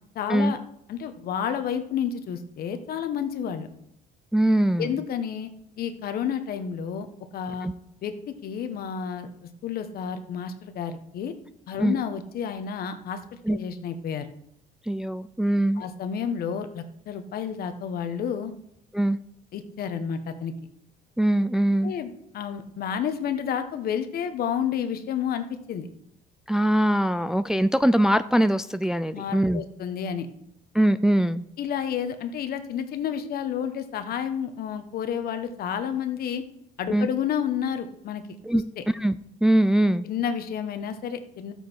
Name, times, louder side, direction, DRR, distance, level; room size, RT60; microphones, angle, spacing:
voice 1, 0.1-0.6 0.9-3.7 4.8-5.5 5.8-7.1 7.3-7.7 8.0-9.3 9.6-11.3 11.7-13.2 13.5-14.3 15.8-18.5 19.5-20.5 21.8-25.9 29.1-30.3 31.6-36.4 36.8-38.2 38.5-38.8 40.0-41.5, left 8 dB, 65° left, 8 dB, 1.3 m, -30 dB
voice 2, 4.3-5.0 7.6-7.7 11.8-11.9 13.5-13.6 14.9-15.8 18.9-19.2 21.2-21.9 26.5-29.6 30.7-31.4 36.9-37.1 38.4-38.6 38.9-40.1, right 1 dB, 5° right, 12 dB, 0.3 m, -22 dB
13.0 x 8.2 x 4.6 m, 0.75 s
cardioid pair, 110°, 17 cm